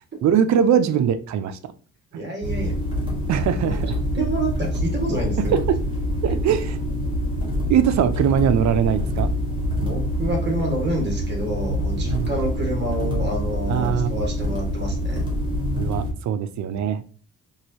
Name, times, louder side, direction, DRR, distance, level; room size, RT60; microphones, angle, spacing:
voice 1, 0.2-1.7 2.1-2.2 3.3-4.0 5.5-5.8 6.2-6.8 7.7-9.3 12.1-12.3 13.7-14.1 15.8-17.1, right 8 dB, 60° right, 11 dB, 0.5 m, -21 dB
voice 2, 2.1-2.7 3.6-3.8 4.1-5.5 9.8-15.2, right 1 dB, 30° right, 0 dB, 1.7 m, -28 dB
sound 1, 2.4-16.1, equal, 15° right, 1.4 m, -25 dB
4.7 x 2.6 x 2.8 m, 0.40 s
cardioid pair, 125°, 33 cm